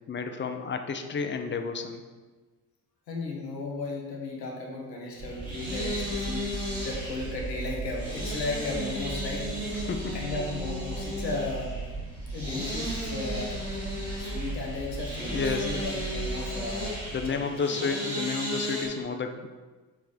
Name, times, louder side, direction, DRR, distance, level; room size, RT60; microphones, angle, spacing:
voice 1, 0.1-2.0 9.7-10.2 15.3-15.9 16.6-16.7 17.1-19.5, left 5 dB, 25° left, 6 dB, 0.6 m, -31 dB
voice 2, 3.1-9.5 10.1-11.8 12.3-13.5 14.2-17.0 17.3-17.7, left 3 dB, 90° left, -1 dB, 1.0 m, -35 dB
sound 1, 5.1-18.9, equal, 80° right, 1.9 m, -35 dB
sound 2, 5.2-17.3, right 3 dB, 25° right, 0.7 m, -37 dB
7.4 x 3.4 x 4.0 m, 1.3 s
figure-of-eight pair, 45°, 49 cm